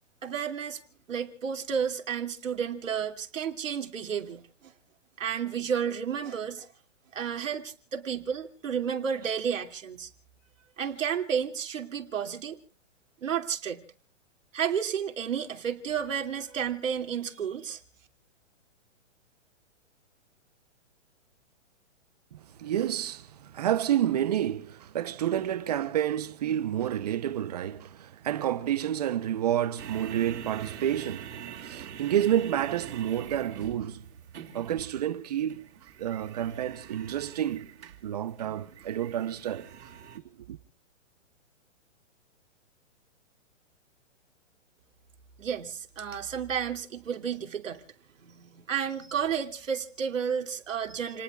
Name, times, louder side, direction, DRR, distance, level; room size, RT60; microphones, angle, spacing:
voice 1, 0.2-0.8 1.1-4.7 5.2-6.7 7.1-10.1 10.8-12.6 13.2-13.8 14.5-17.8 45.4-47.8 48.2-51.2, right 7 dB, 85° right, 2.7 m, -32 dB
voice 2, 22.6-31.3 31.6-34.0 34.5-35.6 36.0-37.7 38.0-39.7 40.5-40.6, right 11 dB, 30° right, 0.7 m, -29 dB
sound 1, 29.8-40.2, right 9 dB, 65° right, 3.2 m, -45 dB
30.0 x 20.0 x 2.4 m
hypercardioid pair, 170°, 37 cm